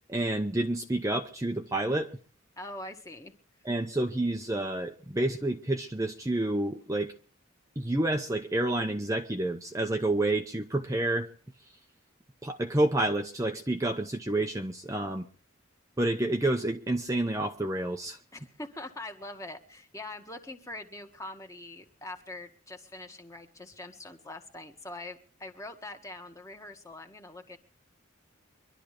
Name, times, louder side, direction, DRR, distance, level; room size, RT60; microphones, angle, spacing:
voice 1, 0.1-2.2 3.6-7.1 7.8-11.3 12.4-15.3 16.0-18.2, right 1 dB, 15° right, 0.8 m, -29 dB
voice 2, 2.6-3.3 18.3-27.6, left 2 dB, 15° left, 1.6 m, -43 dB
24.5 x 12.0 x 3.3 m
head